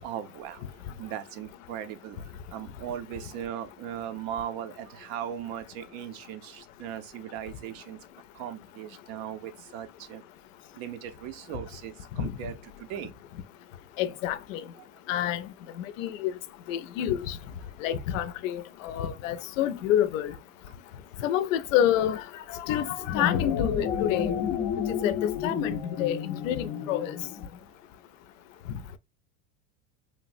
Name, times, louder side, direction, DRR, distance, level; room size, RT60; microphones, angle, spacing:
voice 1, 0.0-2.2 2.5-8.0 8.3-10.2 10.8-13.1, right 10 dB, 55° right, 0.5 m, -38 dB
voice 2, 14.0-14.6 15.1-15.4 16.0-16.3 16.7-17.4 17.8-20.3 21.2-22.2 22.5-24.3 25.0-27.1, left 11 dB, 85° left, 0.5 m, -28 dB
sound 1, 23.0-27.6, left 7 dB, 30° left, 0.4 m, -30 dB
3.2 x 2.0 x 2.4 m
supercardioid pair, 145°, 38 cm